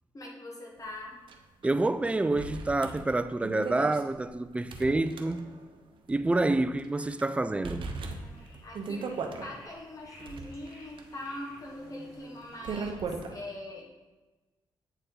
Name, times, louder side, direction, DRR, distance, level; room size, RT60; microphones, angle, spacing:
voice 1, 0.1-1.2 8.2-9.1 9.4-13.9, left 1 dB, 35° left, 1.1 m, -42 dB
sound 1, 1.3-1.4 1.6-1.7 2.4-5.8 6.1-6.2 6.8-7.2 7.6-9.5 10.0-13.3, right 4 dB, 60° right, 0.7 m, -38 dB
voice 2, 1.6-5.4 6.1-7.9, right 2 dB, 15° right, 0.3 m, -28 dB
sound 2, 7.8-12.9, left 1 dB, 90° left, 1.7 m, -56 dB
8.0 x 4.2 x 3.8 m
cardioid pair, 75°, 9 cm